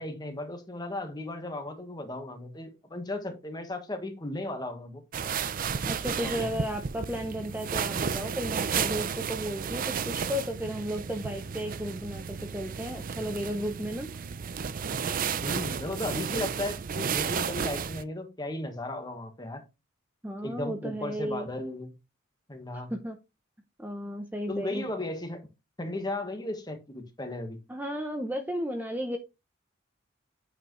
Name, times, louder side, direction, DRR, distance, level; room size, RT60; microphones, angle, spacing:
voice 1, 0.0-5.0 6.0-6.6 15.4-19.6 20.4-21.9 22.5-22.9 24.5-25.5 25.8-27.6, left 1 dB, 20° left, 1.5 m, -35 dB
sound 1, 5.1-18.0, right 6 dB, 45° right, 0.5 m, -33 dB
voice 2, 5.8-14.1 20.2-21.5 22.9-23.2 23.8-24.8 27.7-29.2, equal, 10° right, 0.7 m, -34 dB
8.6 x 4.9 x 3.1 m
head